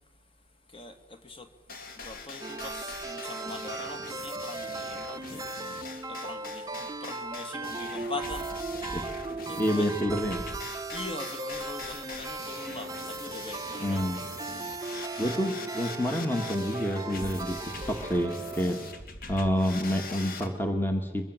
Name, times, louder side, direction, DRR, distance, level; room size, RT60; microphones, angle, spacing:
voice 1, 0.7-1.5 2.0-5.4 6.1-8.5 9.5-9.9 10.9-14.1, left 2 dB, 30° left, 2.1 m, -42 dB
sound 1, 1.7-20.5, left 3 dB, 55° left, 2.6 m, -42 dB
sound 2, 2.4-19.0, right 3 dB, 20° right, 0.7 m, -37 dB
voice 2, 9.6-10.5 13.8-14.2 15.2-18.8 19.3-21.3, equal, 10° left, 1.6 m, -28 dB
23.5 x 23.0 x 7.6 m
head